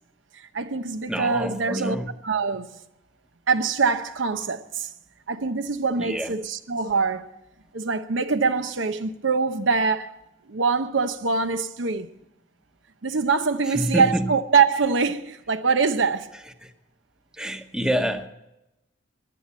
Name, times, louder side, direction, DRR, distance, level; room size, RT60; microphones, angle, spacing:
voice 1, 0.5-2.0 2.2-2.7 3.5-4.9 5.3-7.3 7.7-10.2 10.5-12.1 13.0-16.3, right 5 dB, 80° right, 0.8 m, -24 dB
voice 2, 1.1-2.1 6.0-6.4 13.7-14.3 16.6-16.7 17.3-18.3, equal, 5° right, 1.0 m, -27 dB
15.5 x 10.5 x 8.5 m
head